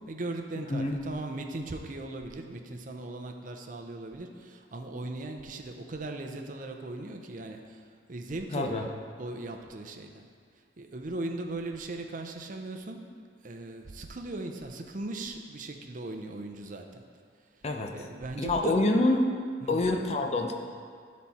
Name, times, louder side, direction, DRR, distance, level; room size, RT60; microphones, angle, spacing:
voice 1, 0.1-8.9 9.2-10.3 10.8-13.0 13.4-17.0 17.6-18.8 19.6-19.8, right 2 dB, 45° right, 4 dB, 0.6 m, -38 dB
voice 2, 8.5-8.9 17.6-17.9 18.4-19.3 19.7-20.5, left 2 dB, 35° left, 3 dB, 0.6 m, -26 dB
11.0 x 4.2 x 4.2 m, 2.1 s
head